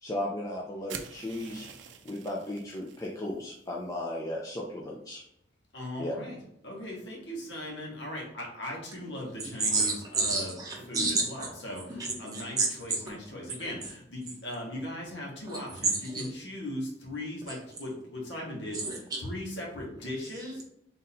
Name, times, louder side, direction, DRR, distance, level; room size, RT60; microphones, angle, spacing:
voice 1, 0.0-1.7 2.0-5.2 6.0-6.1, left 1 dB, 20° left, -3 dB, 0.5 m, -35 dB
sound 1, 0.9-3.1, right 7 dB, 70° right, 0.4 m, -45 dB
voice 2, 5.7-6.4 6.6-10.5 10.9-11.8 12.2-18.8 19.2-20.6, left 1 dB, 65° left, -2 dB, 1.4 m, -38 dB
voice 3, 9.4-11.5 11.9-13.1 13.4-13.9 15.5-16.3 17.4-17.5 18.7-19.2 20.0-20.6, right 3 dB, 20° right, -2 dB, 1.0 m, -31 dB
3.8 x 2.7 x 4.1 m, 0.75 s
head